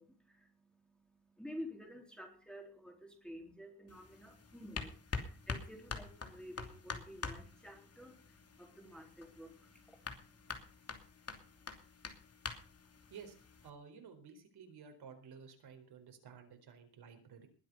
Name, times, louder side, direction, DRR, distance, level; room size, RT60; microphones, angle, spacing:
voice 1, 0.0-10.7, equal, ahead, 2 dB, 3.9 m, -52 dB
sound 1, 3.9-13.7, left 4 dB, 35° left, 2.8 m, -46 dB
voice 2, 13.6-17.5, right 6 dB, 65° right, 5 dB, 4.6 m, -54 dB
21.0 x 8.3 x 5.6 m, 0.39 s
cardioid pair, 115°, 41 cm